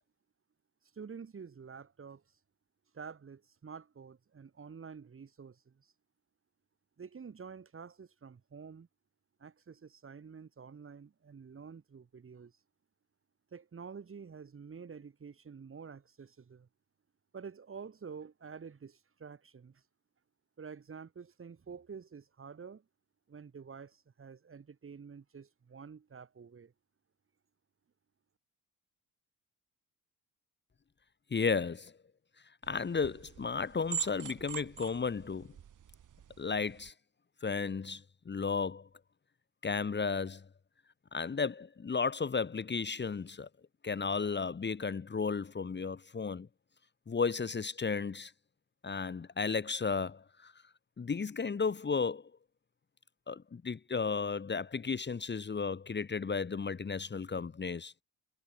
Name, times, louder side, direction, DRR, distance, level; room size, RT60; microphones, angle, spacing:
voice 1, 0.9-2.2 2.9-5.9 7.0-8.9 9.4-12.5 13.5-16.7 17.3-19.8 20.6-22.8 23.3-26.7, right 6 dB, 35° right, 3.0 m, -49 dB
voice 2, 31.3-31.9 32.7-35.5 36.4-36.9 37.4-38.9 39.6-40.5 41.1-43.5 43.8-46.5 47.1-48.3 48.8-50.5 51.0-52.3 53.3-58.0, left 5 dB, 30° left, 1.7 m, -34 dB
sound 1, 32.6-36.9, right 9 dB, 55° right, 3.9 m, -43 dB
cardioid pair, 95°, 37 cm